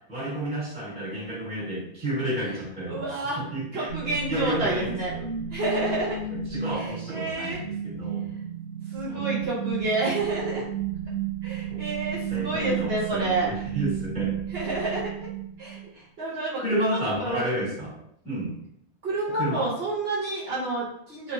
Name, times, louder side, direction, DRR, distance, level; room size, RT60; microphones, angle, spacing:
voice 1, 0.1-3.1 3.3-5.3 5.8-8.2 9.1-9.3 11.7-11.8 12.1-14.3 16.6-18.0 18.2-18.5 19.3-19.7, right 1 dB, 5° right, -10 dB, 1.4 m, -31 dB
voice 2, 2.9-3.4 3.7-5.1 5.5-6.2 6.7-7.6 8.9-10.6 11.4-13.5 14.5-15.3 15.6-17.4 19.0-21.3, right 2 dB, 65° right, -6 dB, 0.9 m, -29 dB
sound 1, 3.9-15.9, right 8 dB, 35° left, 0.9 m, -33 dB
2.9 x 2.1 x 2.5 m, 0.72 s
omnidirectional pair, 1.1 m